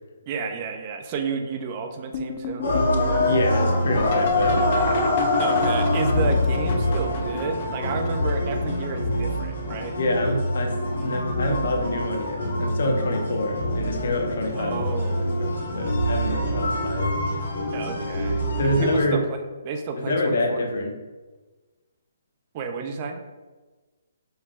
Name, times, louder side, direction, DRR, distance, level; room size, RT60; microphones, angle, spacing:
voice 1, 0.3-2.7 5.4-9.9 14.5-15.3 17.7-19.4 19.6-20.6 22.5-23.2, right 5 dB, 30° right, 5 dB, 0.4 m, -31 dB
sound 1, 2.1-9.8 10.5-11.0 11.5-12.1 13.4-13.5 14.2-14.5 16.7-16.8 19.1-19.2, left 5 dB, 35° left, 0.4 m, -31 dB
sound 2, 2.6-19.0, left 1 dB, 80° left, 1.2 m, -25 dB
voice 2, 3.3-4.8 10.0-14.8 15.1-17.1 18.6-19.2 20.0-20.9, left 2 dB, 65° left, 2 dB, 0.7 m, -26 dB
5.4 x 3.4 x 2.4 m, 1.3 s
hypercardioid pair, 165°, 0 cm